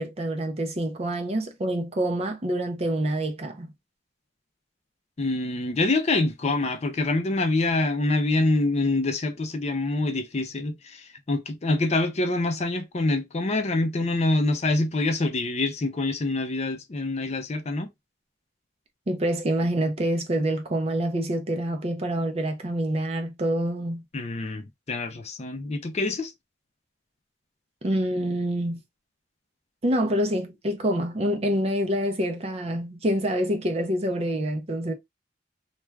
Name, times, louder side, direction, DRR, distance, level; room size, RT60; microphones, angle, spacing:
voice 1, 0.0-3.7 19.1-24.0 27.8-28.8 29.8-34.9, right 1 dB, 35° right, 0.5 m, -26 dB
voice 2, 5.2-17.9 24.1-26.3, left 2 dB, 35° left, 0.5 m, -26 dB
2.3 x 2.3 x 3.1 m
head